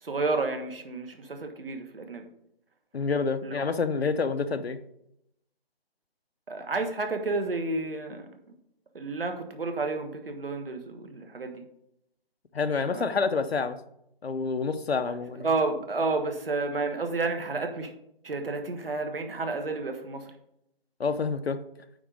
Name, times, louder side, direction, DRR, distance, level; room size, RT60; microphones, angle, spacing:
voice 1, 0.0-2.3 3.4-3.6 6.5-8.5 8.9-11.6 12.9-13.1 15.4-17.9 18.2-20.3, right 3 dB, 65° right, 6 dB, 1.5 m, -31 dB
voice 2, 2.9-4.8 12.5-13.8 14.2-15.5 21.0-21.6, left 4 dB, 90° left, 10 dB, 0.9 m, -28 dB
9.2 x 4.0 x 5.0 m, 0.78 s
hypercardioid pair, 170°, 30 cm